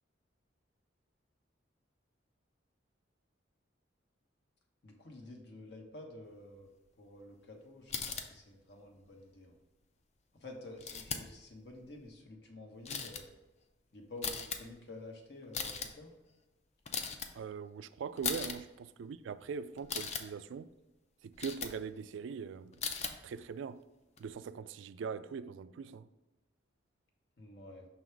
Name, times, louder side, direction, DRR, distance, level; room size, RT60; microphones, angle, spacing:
voice 1, 4.8-6.7 7.0-9.5 10.3-13.3 13.9-16.1 27.4-27.9, left 1 dB, 60° left, 1.1 m, -50 dB
sound 1, 7.9-8.3 10.8-11.3 11.7-12.1 12.8-13.2 14.2-14.6 15.4-15.9 16.9-17.3 18.2-18.6 19.8-20.2 21.3-21.7 22.7-23.1 24.2-24.3, left 6 dB, 35° left, 0.5 m, -38 dB
voice 2, 17.3-20.7 21.2-23.8 24.2-26.1, right 6 dB, 80° right, 0.3 m, -42 dB
5.8 x 3.9 x 4.5 m
head